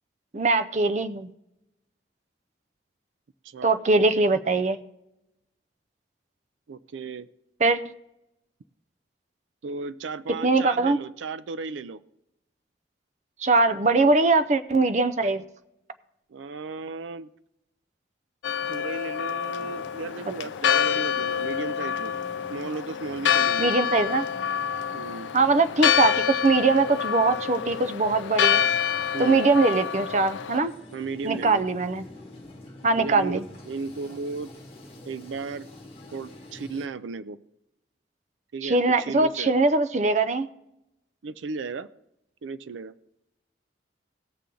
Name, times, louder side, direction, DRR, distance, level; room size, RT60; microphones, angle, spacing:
voice 1, 0.3-1.3 3.6-4.8 7.6-7.8 10.4-11.0 13.4-15.4 23.6-24.3 25.3-28.7 29.2-30.7 31.2-32.0 32.8-33.4 38.6-40.5, right 3 dB, 40° right, 10 dB, 0.5 m, -22 dB
voice 2, 3.4-3.8 6.7-7.3 9.6-12.0 16.3-17.3 18.7-22.2 22.5-23.7 24.9-25.3 29.1-29.5 30.9-31.6 33.0-34.5 35.1-35.7 36.1-37.4 38.5-39.5 41.2-41.9 42.4-42.9, right 4 dB, 85° right, 15 dB, 0.4 m, -35 dB
Church bell, 18.4-30.6, left 9 dB, 80° left, 0.3 m, -27 dB
sound 1, 19.5-36.9, left 1 dB, 30° left, 1.7 m, -46 dB
18.0 x 6.9 x 3.8 m, 0.85 s
head